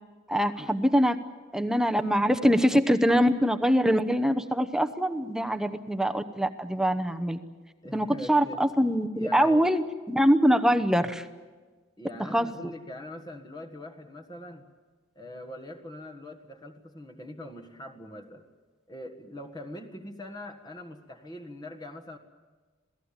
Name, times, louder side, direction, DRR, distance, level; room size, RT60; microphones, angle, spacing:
voice 1, 0.3-1.2 1.5-7.4 7.9-11.3 12.3-12.5, equal, 5° right, 7 dB, 0.9 m, -24 dB
voice 2, 7.8-8.6 9.1-9.7 12.0-14.7 15.1-18.4 18.9-22.2, left 1 dB, 20° left, 3 dB, 1.6 m, -42 dB
27.5 x 18.0 x 8.9 m, 1.3 s
head